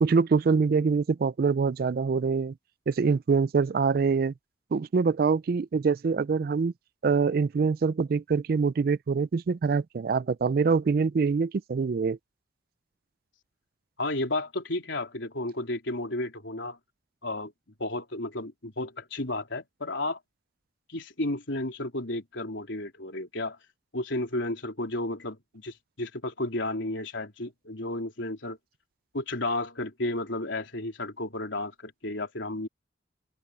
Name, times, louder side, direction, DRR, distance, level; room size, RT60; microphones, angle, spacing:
voice 1, 0.0-2.5 2.9-4.3 4.7-6.7 7.0-12.2, right 5 dB, 50° right, 0.3 m, -24 dB
voice 2, 14.0-16.8 17.2-17.5 17.8-20.2 20.9-23.6 23.9-28.6 29.1-32.7, left 2 dB, 80° left, 3.6 m, -32 dB
open air
head